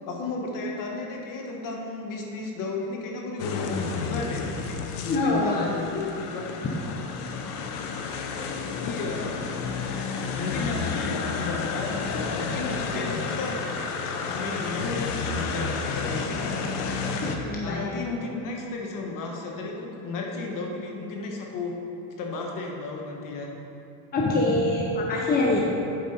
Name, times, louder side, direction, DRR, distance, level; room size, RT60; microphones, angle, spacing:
voice 1, 0.1-4.5 5.0-6.5 8.8-9.4 10.4-13.6 14.1-16.7 17.6-21.7 22.2-23.5, left 3 dB, 45° left, 0 dB, 1.2 m, -33 dB
sound 1, 3.4-17.4, left 5 dB, 90° left, 0.8 m, -31 dB
voice 2, 5.0-5.7 17.2-17.8 24.1-25.6, left 2 dB, 20° left, -2 dB, 0.8 m, -24 dB
7.7 x 4.7 x 4.3 m, 2.7 s
supercardioid pair, 115°, 44 cm